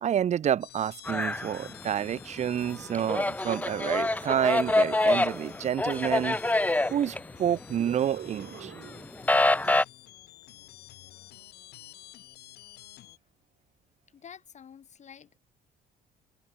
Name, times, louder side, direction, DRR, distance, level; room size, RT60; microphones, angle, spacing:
voice 1, 0.0-6.4 6.9-8.7, right 9 dB, 45° right, 0.8 m, -29 dB
sound 1, 0.6-13.2, left 14 dB, 75° left, 4.0 m, -51 dB
sound 2, 1.0-2.1 2.5-7.9 8.3-9.8, left 2 dB, 10° left, 1.1 m, -26 dB
sound 3, 2.4-3.2 3.9-5.7 7.7-9.2, right 11 dB, 60° right, 7.5 m, -44 dB
voice 2, 14.1-15.4, left 8 dB, 45° left, 4.5 m, -49 dB
open air
cardioid pair, 110°, 17 cm